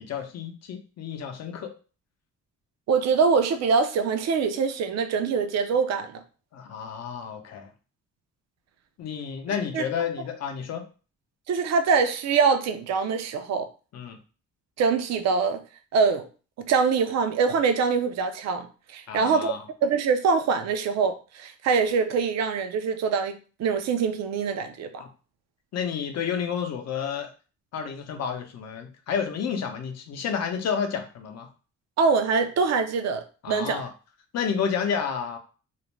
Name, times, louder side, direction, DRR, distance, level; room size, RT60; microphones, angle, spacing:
voice 1, 0.0-1.7 6.5-7.7 9.0-10.8 13.9-14.2 19.1-19.6 25.0-25.1 25.7-27.3 27.7-31.5 33.4-33.9 34.3-35.4, left 7 dB, 60° left, 0.6 m, -30 dB
voice 2, 2.9-6.2 9.7-9.9 11.5-13.7 14.8-15.6 15.9-16.3 16.6-18.7 18.9-19.5 19.8-25.0 32.0-33.8, right 5 dB, 60° right, 0.5 m, -24 dB
2.5 x 2.1 x 3.1 m
cardioid pair, 90°, 30 cm